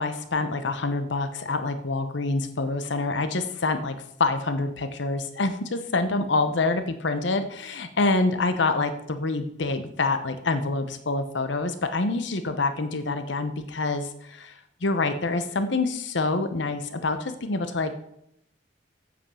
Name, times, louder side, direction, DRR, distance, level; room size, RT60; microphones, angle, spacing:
voice 1, 0.0-3.9 4.2-14.5 14.8-17.9, left 3 dB, 70° left, 9 dB, 0.9 m, -26 dB
8.6 x 7.9 x 5.6 m, 0.75 s
head